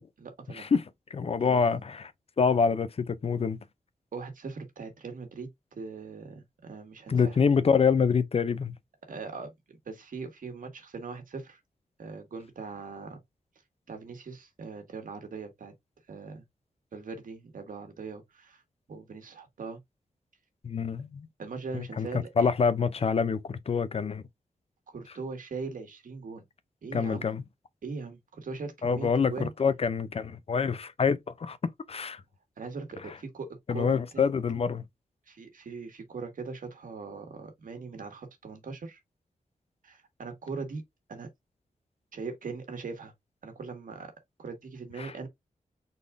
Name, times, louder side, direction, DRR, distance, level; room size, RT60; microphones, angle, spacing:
voice 1, 0.2-0.7 1.4-1.8 4.1-7.4 9.1-11.6 12.0-13.2 13.9-15.7 16.1-16.4 16.9-18.6 18.9-19.8 21.4-22.5 24.9-26.4 26.8-27.3 27.8-29.5 32.6-34.3 35.3-39.0 39.8-40.8 41.1-41.3 42.1-43.1 43.4-44.1 44.4-45.3, right 4 dB, 80° right, 1.5 m, -40 dB
voice 2, 1.1-2.1 2.4-3.6 7.1-8.7 20.6-21.3 21.7-22.1 22.4-24.2 26.9-27.4 28.8-32.2 33.7-34.8 45.0-45.1, left 5 dB, 45° left, 0.5 m, -26 dB
4.1 x 3.7 x 3.4 m
wide cardioid pair, 155°, 14 cm